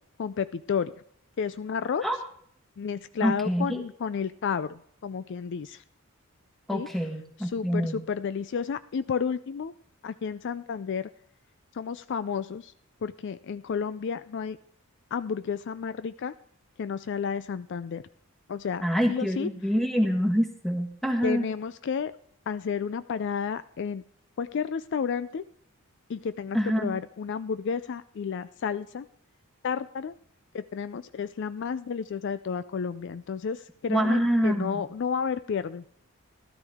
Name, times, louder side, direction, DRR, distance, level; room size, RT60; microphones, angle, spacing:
voice 1, 0.2-0.9 1.4-2.0 2.8-5.8 6.7-6.9 7.5-9.7 10.0-11.1 11.8-12.7 13.0-14.6 15.1-16.3 16.8-18.0 18.5-19.5 21.2-22.1 22.5-24.0 24.4-25.4 26.1-29.1 29.6-30.1 30.5-35.8, left 6 dB, 55° left, 14 dB, 0.4 m, -31 dB
voice 2, 3.2-3.8 6.7-8.0 18.8-21.5 26.5-27.0 33.9-34.8, equal, ahead, 4 dB, 1.4 m, -26 dB
13.5 x 13.0 x 3.5 m, 0.64 s
head